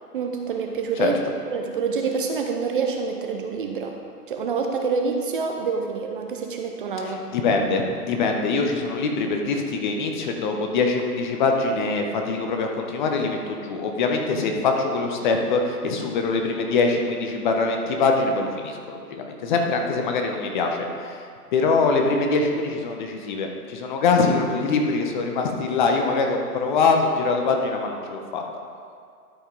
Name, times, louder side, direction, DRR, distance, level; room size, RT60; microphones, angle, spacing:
voice 1, 0.1-1.2 1.5-3.9 4.3-7.2, right 5 dB, 35° right, 3 dB, 0.6 m, -27 dB
voice 2, 7.0-28.4, left 4 dB, 30° left, 3 dB, 0.8 m, -23 dB
12.5 x 5.3 x 3.9 m, 2.2 s
figure-of-eight pair, 130°, 47 cm